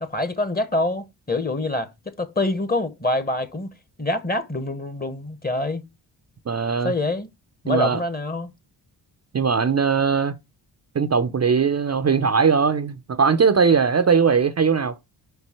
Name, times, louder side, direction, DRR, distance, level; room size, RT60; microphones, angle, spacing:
voice 1, 0.0-3.7 4.0-5.8 6.8-7.3 7.6-8.5, left 2 dB, 20° left, 1.2 m, -25 dB
voice 2, 6.5-6.9 7.7-8.0 9.3-10.3 10.9-15.0, right 6 dB, 30° right, 0.7 m, -20 dB
5.3 x 4.6 x 4.4 m
supercardioid pair, 50°, 48 cm